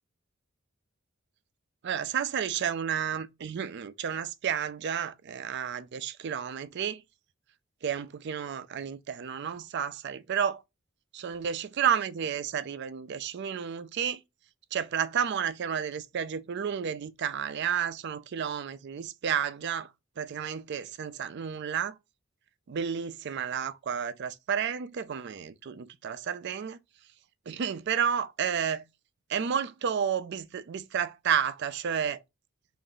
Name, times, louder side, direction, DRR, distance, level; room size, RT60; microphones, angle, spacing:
voice 1, 1.8-7.0 7.8-10.6 11.1-14.2 14.7-22.0 22.7-26.8 27.5-28.9 29.3-32.2, right 8 dB, 55° right, 0.4 m, -31 dB
3.6 x 2.6 x 3.8 m
head